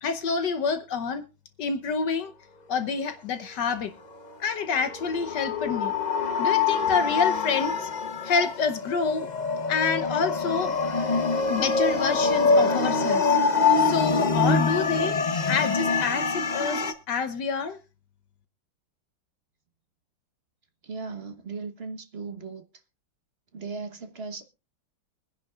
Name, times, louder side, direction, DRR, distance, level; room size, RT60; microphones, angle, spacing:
voice 1, 0.0-1.2 1.6-2.3 2.7-3.9 4.4-5.9 6.4-7.9 8.2-9.3 9.7-10.7 11.5-13.4 13.7-15.2 15.5-17.8, left 5 dB, 65° left, 1.4 m, -27 dB
sound 1, 4.6-16.9, left 4 dB, 45° left, 0.5 m, -25 dB
voice 2, 20.8-22.6 23.5-24.5, right 4 dB, 35° right, 1.2 m, -37 dB
24.0 x 10.0 x 2.4 m
omnidirectional pair, 2.2 m